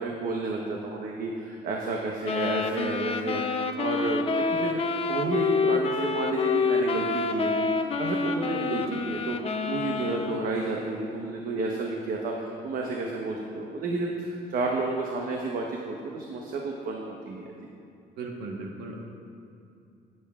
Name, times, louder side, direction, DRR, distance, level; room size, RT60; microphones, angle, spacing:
voice 1, 0.0-17.5, right 3 dB, 60° right, 0 dB, 1.1 m, -31 dB
sound 1, 2.2-10.6, left 4 dB, 35° left, 0.6 m, -28 dB
voice 2, 18.2-19.0, right 3 dB, 80° right, 0 dB, 1.3 m, -37 dB
18.0 x 8.0 x 2.4 m, 2.6 s
cardioid pair, 110°, 17 cm